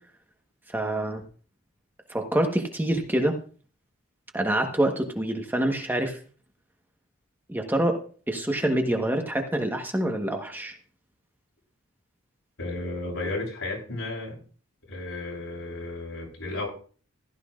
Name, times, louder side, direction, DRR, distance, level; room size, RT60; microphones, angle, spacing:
voice 1, 0.7-1.2 2.1-3.3 4.3-6.2 7.5-8.0 8.3-10.7, right 1 dB, 10° right, 3 dB, 1.2 m, -26 dB
voice 2, 12.6-14.4 14.9-16.7, left 2 dB, 80° left, -2 dB, 7.6 m, -33 dB
15.5 x 12.5 x 2.5 m, 0.40 s
head